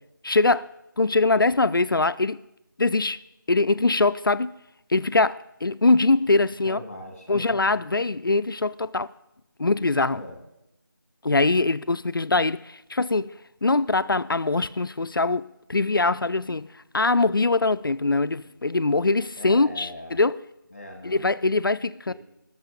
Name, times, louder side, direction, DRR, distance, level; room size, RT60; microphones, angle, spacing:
voice 1, 0.2-0.7 1.0-2.4 2.8-3.2 3.5-4.6 4.9-6.8 7.3-9.1 9.6-10.2 11.2-13.3 13.6-16.7 16.9-20.4 21.0-22.1, left 3 dB, 75° left, 0.5 m, -22 dB
voice 2, 6.6-7.6 9.6-10.4 19.4-20.2 20.7-21.3 22.1-22.2, left 1 dB, 25° left, 2.2 m, -40 dB
17.0 x 6.8 x 5.1 m
figure-of-eight pair, 175°, 11 cm